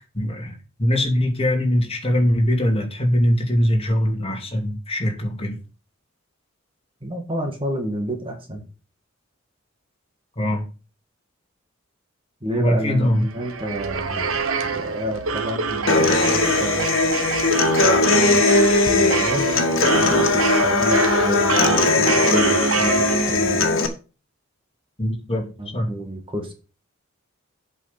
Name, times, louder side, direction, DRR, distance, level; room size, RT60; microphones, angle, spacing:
voice 1, 0.1-5.6 10.4-10.6 12.5-13.2 25.0-25.4 25.7-26.0, equal, 30° left, 2 dB, 2.5 m, -21 dB
voice 2, 7.0-8.6 12.4-14.3 14.6-16.9 17.8-18.5 18.9-19.6 19.9-23.6 25.6-26.5, right 1 dB, 25° right, 4 dB, 1.8 m, -30 dB
sound 1, 13.2-23.7, right 4 dB, 80° right, 1.0 m, -25 dB
Human voice / Acoustic guitar, 15.9-23.9, left 3 dB, 65° left, 1.8 m, -19 dB
8.2 x 5.4 x 6.6 m, 0.34 s
head